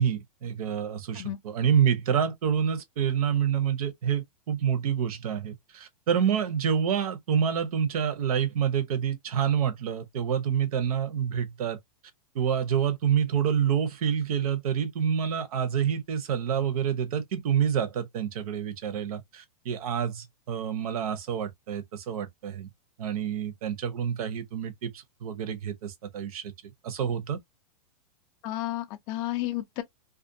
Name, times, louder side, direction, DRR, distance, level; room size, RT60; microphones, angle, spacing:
voice 1, 0.0-11.8 12.3-22.7 23.0-27.4, right 8 dB, 70° right, 0.7 m, -27 dB
voice 2, 28.4-29.8, left 15 dB, 25° left, 0.3 m, -32 dB
2.4 x 2.2 x 2.6 m
supercardioid pair, 165°, 20 cm